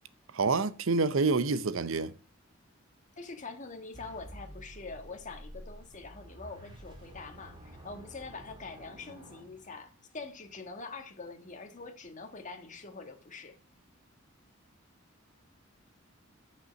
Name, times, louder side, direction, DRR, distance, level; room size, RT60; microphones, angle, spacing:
voice 1, 0.3-2.1, right 4 dB, 70° right, 0.7 m, -27 dB
voice 2, 3.2-7.5 7.8-13.6, left 3 dB, 40° left, 1.6 m, -44 dB
sound 1, 3.9-10.1, right 1 dB, 25° right, 2.6 m, -50 dB
9.2 x 5.5 x 6.9 m
head